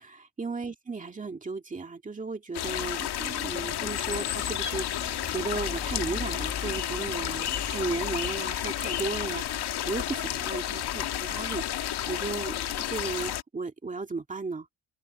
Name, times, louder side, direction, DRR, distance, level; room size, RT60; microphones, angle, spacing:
voice 1, 0.0-14.7, right 3 dB, 20° right, 2.0 m, -35 dB
sound 1, 2.5-13.4, left 11 dB, 90° left, 2.0 m, -31 dB
sound 2, 3.5-8.6, left 5 dB, 25° left, 1.6 m, -40 dB
wide cardioid pair, 170°, 38 cm